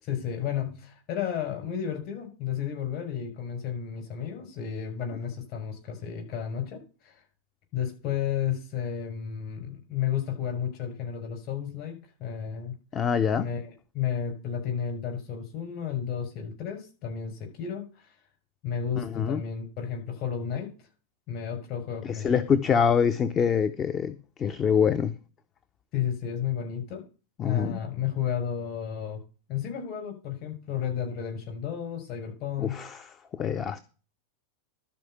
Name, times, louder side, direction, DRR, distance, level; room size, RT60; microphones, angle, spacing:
voice 1, 0.0-7.2 7.7-12.7 13.3-13.6 13.9-18.1 18.6-20.7 21.3-22.8 25.9-27.0 27.4-29.2 29.5-32.8, left 8 dB, 40° left, 6.2 m, -32 dB
voice 2, 12.9-13.5 19.0-19.4 22.0-25.1 27.4-27.8 32.6-33.0 33.3-33.8, left 7 dB, 25° left, 0.7 m, -25 dB
12.5 x 4.9 x 8.2 m
figure-of-eight pair, 90°, 0 cm